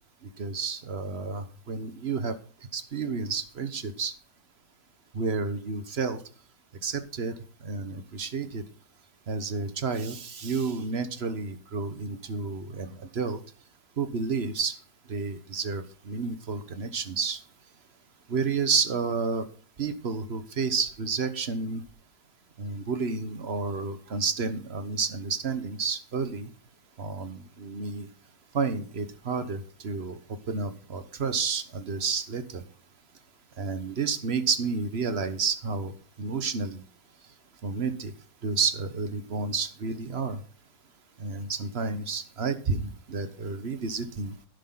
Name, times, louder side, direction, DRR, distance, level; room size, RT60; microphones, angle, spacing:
voice 1, 0.4-2.4 2.7-4.1 5.1-6.2 6.8-7.3 7.6-8.6 9.3-13.4 14.0-14.7 15.1-17.4 18.3-19.5 19.8-21.8 22.6-26.5 27.0-28.1 28.5-30.2 30.5-32.6 33.6-35.9 36.2-36.8 37.6-38.1 38.4-40.4 41.2-44.3, right 4 dB, 40° right, 11 dB, 1.3 m, -30 dB
12.0 x 10.0 x 3.9 m, 0.42 s
omnidirectional pair, 1.8 m